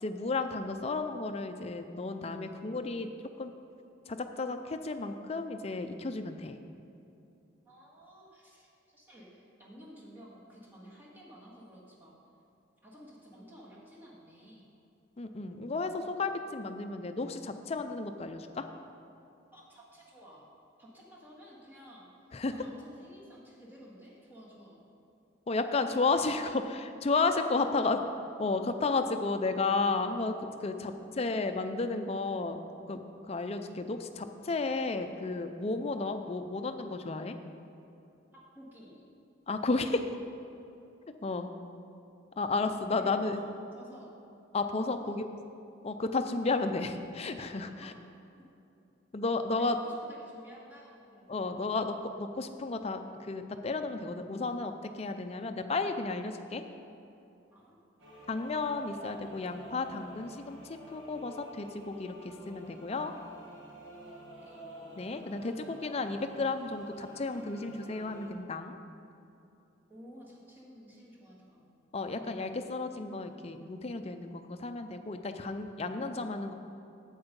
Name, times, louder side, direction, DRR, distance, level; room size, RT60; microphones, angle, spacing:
voice 1, 0.0-3.1 3.4-3.5 4.1-6.6 15.2-18.7 22.3-22.5 25.5-28.0 28.4-32.6 32.9-33.0 33.3-37.4 39.5-40.1 41.2-41.5 42.4-43.4 44.5-45.3 45.8-47.9 49.1-49.8 51.3-56.6 58.3-63.1 65.0-68.8 71.9-76.5, left 3 dB, 35° left, 7 dB, 0.5 m, -33 dB
voice 2, 7.6-12.2 12.8-14.7 19.5-20.5 20.8-22.1 22.5-24.8 27.6-27.7 30.7-31.1 38.3-39.1 41.2-41.3 43.0-43.2 43.7-44.1 45.0-45.2 47.8-48.0 49.5-51.3 57.5-57.8 64.3-64.6 69.9-71.6, equal, 10° right, -6 dB, 1.8 m, -53 dB
sound 1, 58.0-68.3, right 1 dB, 80° right, 1.5 m, -50 dB
8.4 x 7.9 x 5.3 m, 2.7 s
head